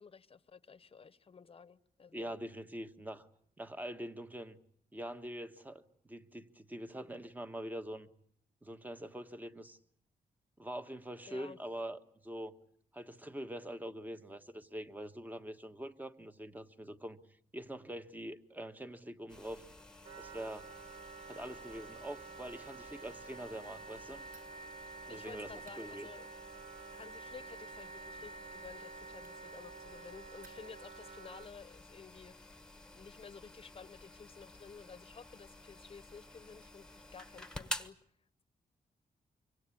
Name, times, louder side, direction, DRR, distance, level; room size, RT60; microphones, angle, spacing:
voice 1, 0.0-2.3 11.3-11.6 25.1-26.3 27.0-32.6 32.9-38.0, left 5 dB, 40° left, 1.1 m, -53 dB
voice 2, 2.1-3.3 3.6-4.6 4.9-8.1 8.6-9.8 10.6-12.6 12.9-17.2 17.5-19.6 20.2-20.7 21.3-24.2 25.1-26.1, right 1 dB, 10° right, 1.4 m, -44 dB
sound 1, 19.3-37.9, left 1 dB, 5° left, 1.4 m, -51 dB
Wind instrument woodwind instrument, 20.0-31.5, right 4 dB, 40° right, 1.6 m, -50 dB
Fire, 24.2-31.0, right 3 dB, 65° right, 6.4 m, -68 dB
25.0 x 25.0 x 8.5 m
wide cardioid pair, 125°, 15 cm